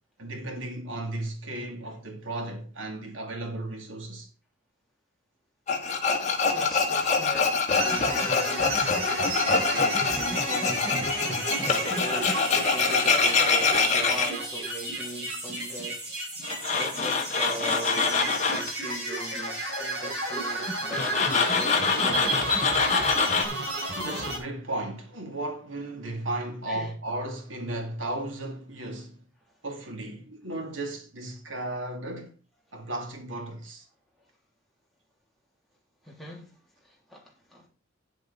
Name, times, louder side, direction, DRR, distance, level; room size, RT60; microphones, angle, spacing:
voice 1, 0.2-4.3 23.9-29.2 29.6-32.4 32.7-33.9, right 2 dB, 80° right, 2.5 m, -35 dB
Tools, 5.7-14.3 16.4-18.7 20.9-23.4, left 4 dB, 35° left, 1.7 m, -25 dB
voice 2, 6.5-11.2 11.6-16.0 16.7-22.5 26.7-26.9 36.0-37.7, equal, ahead, 3.2 m, -40 dB
sound 1, 7.7-24.4, right 1 dB, 60° right, 5.1 m, -32 dB
9.6 x 7.7 x 4.1 m
head